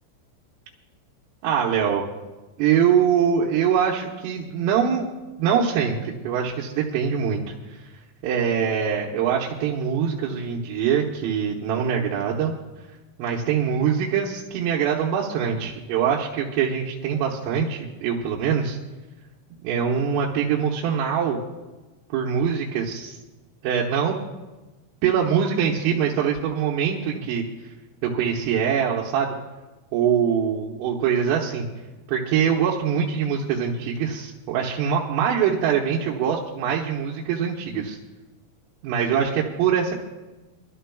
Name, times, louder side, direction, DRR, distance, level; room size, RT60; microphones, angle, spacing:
voice 1, 1.4-2.1 2.6-5.1 5.4-7.4 8.2-12.5 13.2-18.8 19.6-21.4 22.1-23.2 23.6-24.2 25.0-27.4 28.0-29.4 29.9-31.7 32.1-38.0 38.8-39.9, right 7 dB, 85° right, -3 dB, 3.7 m, -23 dB
25.0 x 13.0 x 2.3 m, 1.1 s
omnidirectional pair, 5.7 m